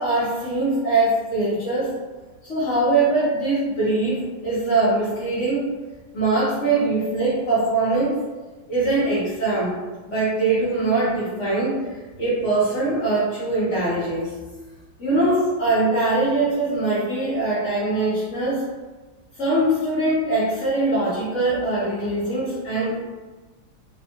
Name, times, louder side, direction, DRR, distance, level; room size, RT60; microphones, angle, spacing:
voice 1, 0.0-2.0 2.5-5.6 6.1-8.2 8.7-9.7 10.1-11.8 12.2-14.3 15.0-18.7 19.4-23.0, right 2 dB, 65° left, -9 dB, 0.7 m, -22 dB
3.5 x 2.2 x 2.7 m, 1.2 s
omnidirectional pair, 2.3 m